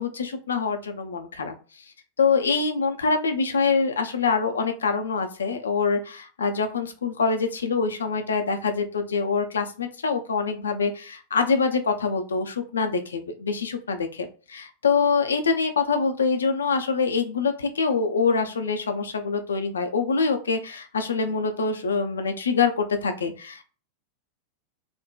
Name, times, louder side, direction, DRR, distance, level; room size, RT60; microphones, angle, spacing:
voice 1, 0.0-1.5 2.2-23.7, left 5 dB, 70° left, 7 dB, 0.5 m, -25 dB
3.7 x 2.1 x 2.2 m, 0.37 s
figure-of-eight pair, 90°, 0 cm